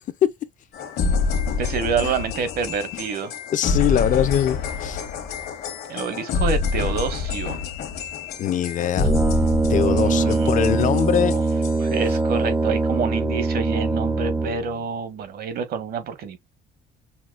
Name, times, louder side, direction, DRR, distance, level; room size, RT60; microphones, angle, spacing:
sound 1, 0.7-12.1, left 5 dB, 70° left, 1.2 m, -27 dB
voice 1, 1.6-3.3 5.9-7.6 9.8-10.5 11.3-11.4 11.8-16.4, right 6 dB, 65° right, 1.3 m, -27 dB
voice 2, 3.5-5.0 8.4-9.2 9.7-11.3, left 10 dB, 50° left, 0.6 m, -22 dB
Brass instrument, 9.0-14.7, right 3 dB, 15° right, 0.5 m, -22 dB
5.8 x 2.3 x 2.3 m
cardioid pair, 110°, 17 cm